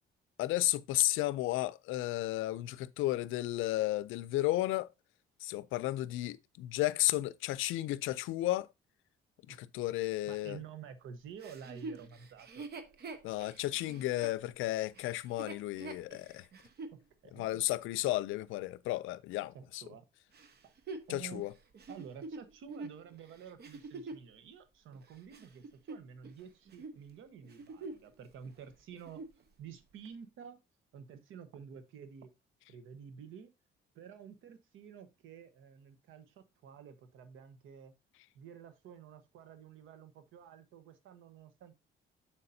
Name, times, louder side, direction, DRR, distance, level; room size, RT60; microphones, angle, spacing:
voice 1, 0.4-4.9 5.4-8.7 9.5-10.6 13.2-16.5 17.3-19.8 21.1-21.5, left 16 dB, 90° left, 0.4 m, -33 dB
voice 2, 10.3-12.7 16.9-17.6 19.5-20.0 20.6-20.7 21.1-21.4 21.9-29.2 29.6-30.6 30.9-32.3 32.7-33.5 33.9-37.9 38.3-41.7, right 7 dB, 85° right, 1.2 m, -50 dB
Chuckle chortle, 11.4-17.0 17.6-17.7 20.3-24.3 24.9-26.4 26.7-27.0 27.4-28.1 28.4-28.5 28.9-29.4 30.0-30.1, right 3 dB, 55° right, 1.1 m, -46 dB
7.1 x 6.8 x 2.7 m
cardioid pair, 90°, 20 cm